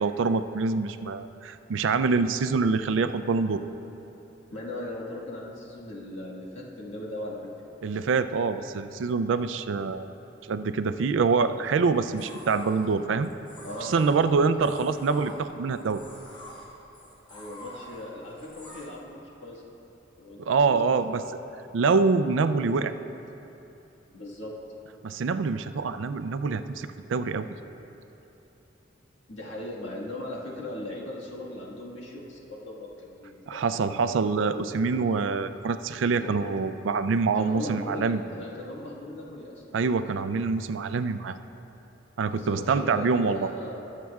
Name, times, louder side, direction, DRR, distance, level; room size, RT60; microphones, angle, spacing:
voice 1, 0.0-3.6 7.8-10.1 10.5-13.3 13.8-16.0 20.4-21.2 21.7-22.9 25.0-27.5 33.5-38.2 39.7-41.4 42.2-43.5, right 4 dB, 80° right, 11 dB, 0.4 m, -25 dB
voice 2, 4.5-7.5 13.6-14.5 17.3-19.6 20.2-20.4 20.7-20.8 24.1-24.5 29.3-33.7 36.2-36.3 37.3-39.8 42.3-43.8, left 1 dB, 85° left, -5 dB, 1.6 m, -38 dB
sound 1, 11.6-18.9, left 1 dB, 25° left, 1.6 m, -47 dB
21.5 x 7.5 x 2.3 m, 3.0 s
head